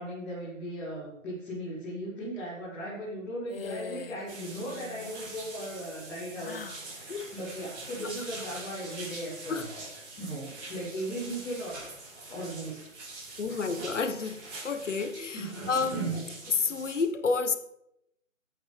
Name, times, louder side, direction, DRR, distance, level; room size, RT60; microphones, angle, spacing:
voice 1, 0.0-9.8 10.1-11.8 12.3-12.8 13.1-13.6 15.3-16.0, equal, 5° left, -10 dB, 0.7 m, -38 dB
sound 1, 3.5-4.3 4.6-5.2 6.4-6.9, left 6 dB, 45° left, 0.6 m, -42 dB
sound 2, 4.3-17.0, right 3 dB, 55° right, 5.1 m, -42 dB
voice 2, 13.4-14.4 14.6-16.1 16.5-17.6, left 4 dB, 65° left, 9 dB, 1.3 m, -30 dB
17.0 x 8.6 x 3.3 m, 0.81 s
figure-of-eight pair, 150°, 39 cm